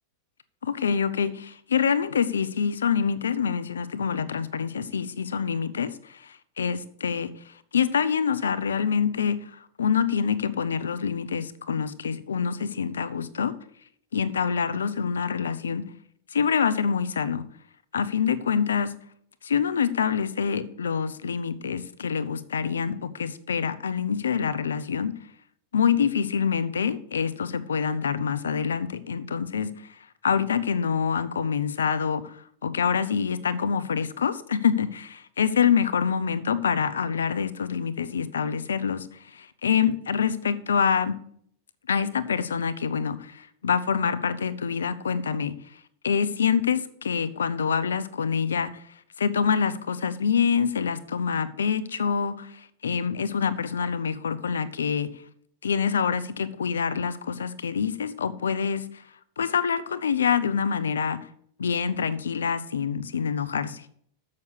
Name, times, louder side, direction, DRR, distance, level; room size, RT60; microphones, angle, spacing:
voice 1, 0.6-7.3 7.7-13.5 14.1-15.9 16.3-17.4 17.9-18.9 19.4-25.1 25.7-29.7 30.2-41.2 41.9-45.5 46.0-48.8 49.2-55.1 55.6-58.8 59.4-61.2 61.6-63.9, left 7 dB, 90° left, 15 dB, 0.6 m, -26 dB
7.0 x 6.5 x 6.6 m, 0.64 s
hypercardioid pair, 105°, 0 cm